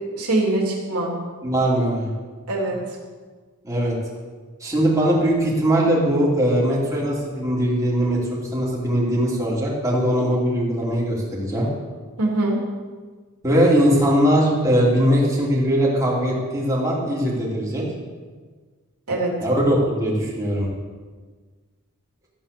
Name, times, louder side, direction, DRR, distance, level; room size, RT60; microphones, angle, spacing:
voice 1, 0.2-1.2 2.5-3.0 12.2-12.6 19.1-19.3, right 2 dB, 80° right, -1 dB, 3.1 m, -23 dB
voice 2, 1.4-2.1 3.6-3.9 4.6-11.7 13.4-17.8 19.4-20.7, equal, 15° right, -5 dB, 3.2 m, -20 dB
13.5 x 8.8 x 6.9 m, 1.5 s
head